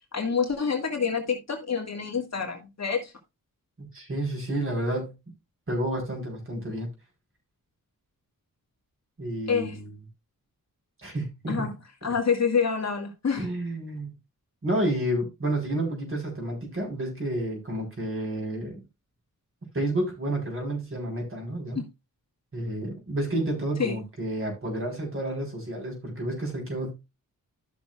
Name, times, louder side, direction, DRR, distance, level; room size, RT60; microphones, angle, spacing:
voice 1, 0.0-3.1 9.5-9.8 11.5-11.7 12.0-13.5 21.8-21.9 23.8-24.0, left 6 dB, 50° left, 2.3 m, -27 dB
voice 2, 3.9-5.1 5.7-6.9 9.2-9.8 11.0-11.7 13.4-14.1 14.6-18.8 19.7-21.8 22.5-26.9, right 1 dB, 40° right, 4.7 m, -30 dB
14.0 x 6.3 x 2.5 m
wide cardioid pair, 140°, 34 cm